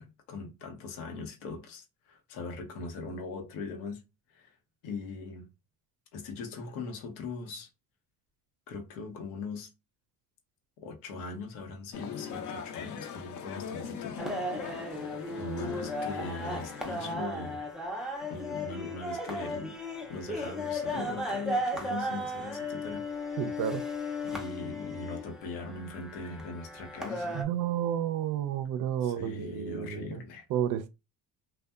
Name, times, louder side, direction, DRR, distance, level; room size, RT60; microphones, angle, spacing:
voice 1, 0.0-4.0 4.3-4.5 4.8-5.5 6.1-7.7 8.7-9.7 10.8-14.2 14.5-15.0 15.3-17.6 18.3-19.8 20.1-23.4 24.2-27.5 29.0-30.4, left 3 dB, 85° left, 0.8 m, -40 dB
sound 1, 11.9-17.1, left 7 dB, 50° left, 0.6 m, -40 dB
sound 2, 14.2-27.4, left 1 dB, ahead, 0.4 m, -36 dB
voice 2, 23.4-23.8 27.3-30.2 30.5-30.9, right 10 dB, 55° right, 0.5 m, -31 dB
2.6 x 2.2 x 2.3 m
cardioid pair, 100°, 39 cm